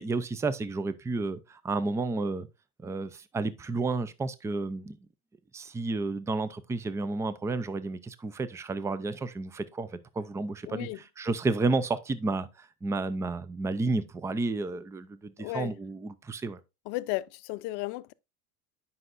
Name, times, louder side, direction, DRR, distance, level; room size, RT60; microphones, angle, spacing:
voice 1, 0.0-2.5 2.8-5.0 5.5-10.9 11.2-16.6, right 3 dB, 5° right, 0.4 m, -31 dB
voice 2, 10.7-11.0 15.4-15.8 16.9-18.1, left 18 dB, 60° left, 0.6 m, -34 dB
9.7 x 5.5 x 2.5 m
supercardioid pair, 110°, 46 cm